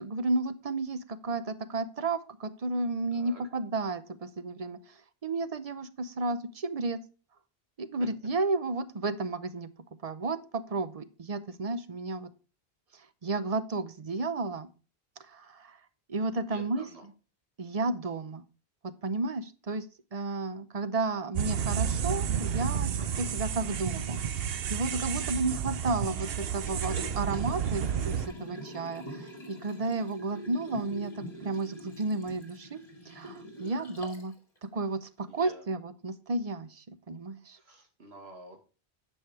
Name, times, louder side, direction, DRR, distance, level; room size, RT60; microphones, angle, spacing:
voice 1, 0.0-4.8 5.2-7.0 7.8-9.7 10.0-12.3 13.2-14.7 15.3-15.8 16.1-16.8 17.6-18.4 18.8-19.8 20.1-22.9 23.2-32.8 33.1-34.3 34.7-37.6, right 3 dB, 40° right, 13 dB, 0.7 m, -32 dB
voice 2, 3.1-3.4 8.0-8.1 16.5-17.0 23.0-23.3 35.3-35.7 37.6-38.6, right 2 dB, 85° right, 4 dB, 2.0 m, -49 dB
sound 1, 21.4-28.3, right 8 dB, 70° right, 0.9 m, -31 dB
Liquid, 26.7-34.3 34.8-34.9, equal, 35° left, 2.3 m, -44 dB
9.5 x 5.6 x 4.6 m, 0.35 s
omnidirectional pair, 1.0 m